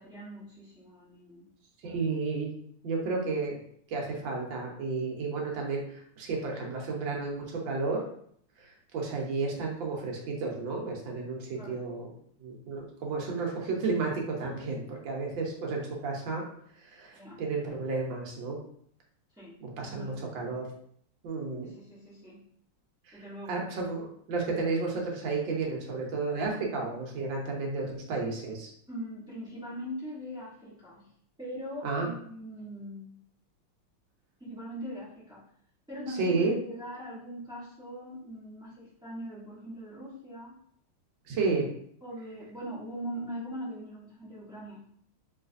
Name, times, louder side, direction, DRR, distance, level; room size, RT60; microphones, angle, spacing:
voice 1, 0.0-1.5 1.8-2.1 11.5-11.8 17.1-17.4 19.3-19.6 19.9-20.2 21.6-22.4 23.1-23.7 28.9-31.1 31.4-33.1 34.4-35.4 35.9-40.6 42.0-44.8, equal, 5° right, -10 dB, 0.4 m, -41 dB
voice 2, 1.8-2.5 2.8-3.6 3.9-8.0 8.6-12.0 12.4-16.4 16.8-18.6 19.6-20.6 21.2-21.7 23.5-28.7 31.8-32.1 36.1-36.6 41.3-41.7, right 4 dB, 70° right, -1 dB, 1.5 m, -32 dB
3.2 x 3.1 x 2.5 m, 0.65 s
omnidirectional pair, 2.3 m